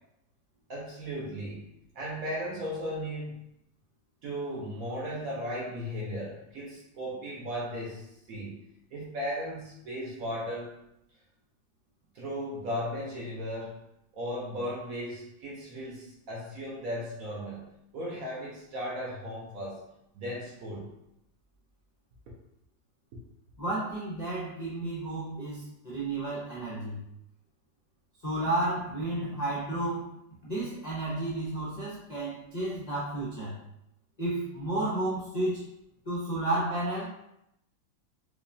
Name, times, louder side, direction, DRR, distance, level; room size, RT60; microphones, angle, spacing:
voice 1, 0.7-3.5 4.2-8.6 8.9-10.7 12.1-13.8 14.1-19.8 20.1-20.9, equal, 65° right, -5 dB, 0.9 m, -36 dB
voice 2, 23.6-27.0 28.2-30.1 30.4-33.6 34.2-35.7 36.1-37.1, right 2 dB, 75° left, -8 dB, 0.3 m, -32 dB
4.8 x 2.3 x 2.6 m, 0.82 s
omnidirectional pair, 2.1 m